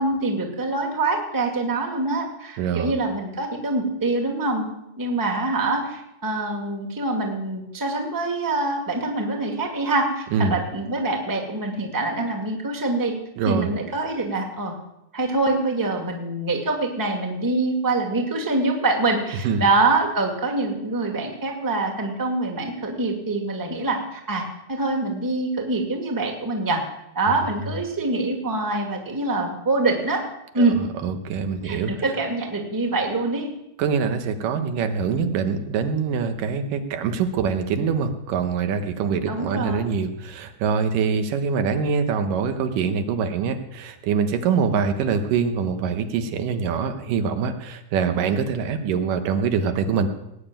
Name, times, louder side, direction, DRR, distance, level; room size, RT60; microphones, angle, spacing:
voice 1, 0.0-4.7 5.0-13.1 13.4-14.8 15.1-26.8 27.1-30.2 30.5-30.8 31.6-33.5 39.3-39.9, right 2 dB, 10° right, 2 dB, 1.5 m, -25 dB
voice 2, 2.6-2.9 10.3-10.6 13.4-13.7 19.4-19.7 30.6-30.7 31.0-31.9 33.8-50.1, right 6 dB, 85° right, 7 dB, 2.8 m, -24 dB
18.5 x 7.0 x 8.9 m, 0.84 s
omnidirectional pair, 3.7 m